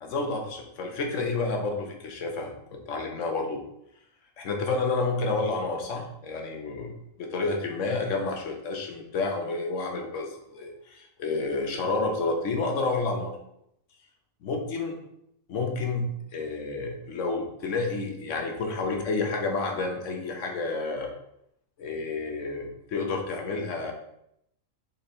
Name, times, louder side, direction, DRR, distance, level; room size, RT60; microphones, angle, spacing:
voice 1, 0.0-3.6 4.4-6.9 7.2-13.3 14.4-15.0 15.5-21.1 21.8-23.9, left 3 dB, 70° left, 2 dB, 1.1 m, -30 dB
4.1 x 3.1 x 4.2 m, 0.76 s
omnidirectional pair, 1.4 m